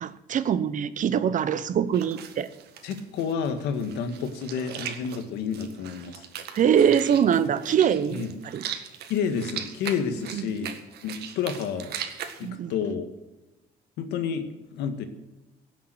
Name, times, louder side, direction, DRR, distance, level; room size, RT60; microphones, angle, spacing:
voice 1, 0.0-2.5 6.5-8.2 8.5-8.6 10.3-10.4 12.4-12.7, right 8 dB, 50° right, 14 dB, 1.0 m, -23 dB
sound 1, 1.9-12.5, right 9 dB, 70° right, 1.8 m, -39 dB
voice 2, 2.8-6.3 8.1-8.3 9.1-10.8 11.0-11.9 12.4-13.1 14.0-15.1, left 6 dB, 85° left, 8 dB, 1.9 m, -30 dB
17.0 x 7.3 x 8.1 m, 1.1 s
cardioid pair, 110°, 17 cm